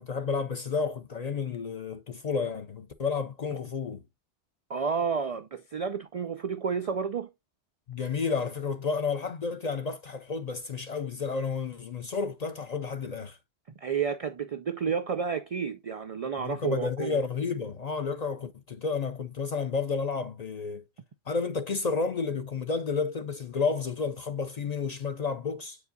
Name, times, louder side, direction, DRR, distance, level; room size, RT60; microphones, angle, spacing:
voice 1, 0.0-4.0 7.9-13.4 16.4-20.8 21.3-25.8, left 5 dB, 55° left, 0.5 m, -31 dB
voice 2, 4.7-7.3 13.8-17.2, right 6 dB, 70° right, 0.3 m, -31 dB
7.8 x 4.8 x 2.6 m
omnidirectional pair, 1.1 m